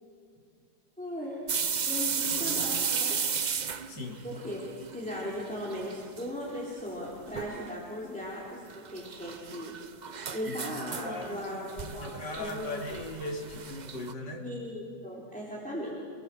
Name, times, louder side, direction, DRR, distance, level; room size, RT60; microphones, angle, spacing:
voice 1, 1.0-1.5 1.9-3.2 4.2-4.6 4.9-9.7 10.3-13.0 14.3-16.0, equal, 5° left, -5 dB, 3.9 m, -38 dB
sound 1, 1.5-5.3 5.6-6.3 6.6-6.7 7.3-7.7 8.7-14.1, right 6 dB, 50° right, 0.5 m, -34 dB
voice 2, 3.9-4.2 10.4-10.5 10.9-11.5 11.8-14.5, left 2 dB, 85° left, 2 dB, 3.3 m, -38 dB
30.0 x 19.5 x 7.9 m, 2.1 s
omnidirectional pair, 1.8 m